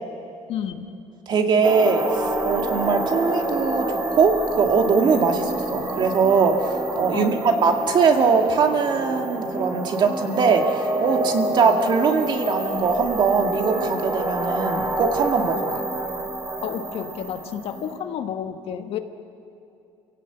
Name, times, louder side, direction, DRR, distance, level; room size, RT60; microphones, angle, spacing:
voice 1, 0.5-0.9 7.1-7.3 16.6-19.0, left 9 dB, 60° left, 7 dB, 1.4 m, -30 dB
voice 2, 1.3-6.6 7.0-15.8, right 5 dB, 40° right, 3 dB, 2.2 m, -21 dB
sound 1, 1.6-18.0, right 1 dB, 20° right, 2.4 m, -28 dB
28.0 x 17.5 x 8.1 m, 2.6 s
cardioid pair, 145°, 12 cm